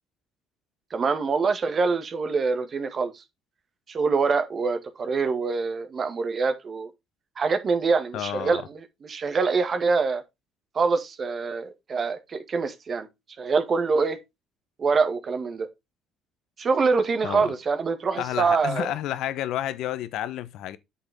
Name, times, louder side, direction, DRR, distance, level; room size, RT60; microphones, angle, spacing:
voice 1, 0.9-3.2 3.9-6.9 7.4-10.2 10.7-13.1 13.4-14.2 14.8-15.7 16.6-18.9, right 4 dB, 40° right, 1.8 m, -25 dB
voice 2, 8.1-8.7 17.2-17.5 18.2-20.8, left 12 dB, 70° left, 0.9 m, -30 dB
8.5 x 6.0 x 3.5 m
supercardioid pair, 90°, 0 cm